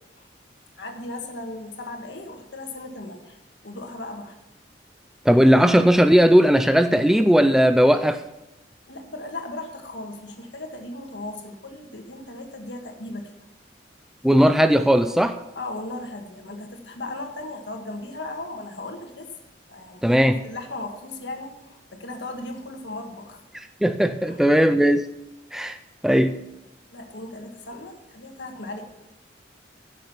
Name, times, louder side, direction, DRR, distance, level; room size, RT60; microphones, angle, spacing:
voice 1, 0.8-3.4 3.6-4.3 8.9-13.3 15.6-19.3 19.7-20.2 20.4-23.4 24.3-24.4 26.9-28.8, left 2 dB, 75° left, 3 dB, 1.8 m, -36 dB
voice 2, 5.3-8.2 14.2-15.4 20.0-20.4 23.5-25.1 25.5-25.8 26.0-26.4, equal, 5° right, 9 dB, 0.4 m, -17 dB
15.5 x 6.6 x 5.8 m, 0.93 s
head